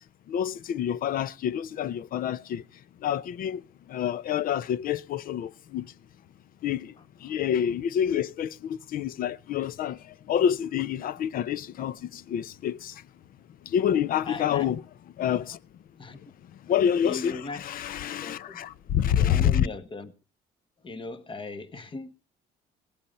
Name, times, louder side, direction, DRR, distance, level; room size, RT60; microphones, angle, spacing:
voice 1, 0.3-2.6 3.0-3.6 3.9-5.9 6.6-6.9 7.2-13.0 13.6-14.8 15.2-15.6 16.7-19.7, left 9 dB, 55° left, 0.6 m, -27 dB
voice 2, 7.0-7.4 14.2-14.7 16.0-16.2 17.0-17.8 18.2-18.6 19.2-20.1 20.8-22.1, left 3 dB, 30° left, 1.4 m, -38 dB
18.0 x 8.6 x 5.3 m
cardioid pair, 110°, 17 cm